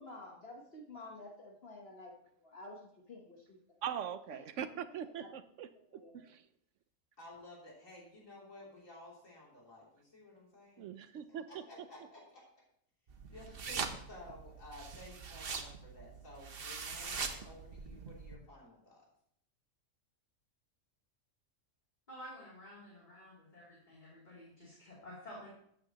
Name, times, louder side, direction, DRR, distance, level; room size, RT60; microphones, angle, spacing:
voice 1, 0.0-2.1 2.4-3.6 4.3-4.4 5.2-5.3 5.9-6.3, left 2 dB, 50° left, -1 dB, 1.4 m, -51 dB
voice 2, 3.8-6.5 10.8-11.9, right 9 dB, 70° right, 12 dB, 0.9 m, -42 dB
voice 3, 7.2-10.9 11.5-12.5 13.3-19.1, left 1 dB, 75° left, -4 dB, 3.4 m, -54 dB
sound 1, 13.1-18.4, right 5 dB, 50° right, 1.1 m, -42 dB
voice 4, 22.1-25.5, equal, 35° left, -7 dB, 3.1 m, -51 dB
14.0 x 8.9 x 2.9 m, 0.71 s
omnidirectional pair, 1.4 m